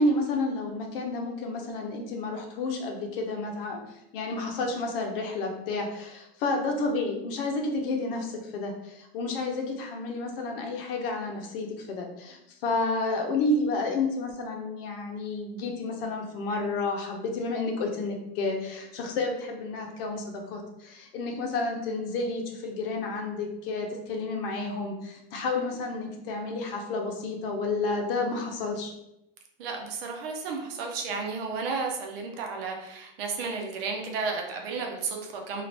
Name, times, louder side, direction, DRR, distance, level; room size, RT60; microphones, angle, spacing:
voice 1, 0.0-28.9, left 3 dB, 65° left, 2 dB, 0.7 m, -30 dB
voice 2, 29.6-35.6, right 4 dB, 65° right, 2 dB, 0.7 m, -33 dB
2.5 x 2.4 x 3.2 m, 0.85 s
supercardioid pair, 140°, 31 cm